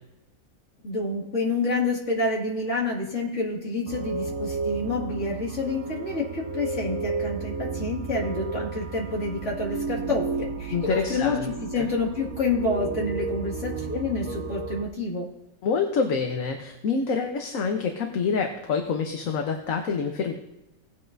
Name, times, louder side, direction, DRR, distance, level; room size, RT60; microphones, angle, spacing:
voice 1, 0.8-15.3, left 3 dB, 60° left, -2 dB, 2.7 m, -28 dB
sound 1, 3.9-14.8, right 4 dB, 75° right, 1.2 m, -33 dB
voice 2, 10.7-11.9 15.6-20.3, left 5 dB, 75° left, 3 dB, 1.4 m, -27 dB
18.0 x 9.0 x 2.7 m, 0.94 s
omnidirectional pair, 1.4 m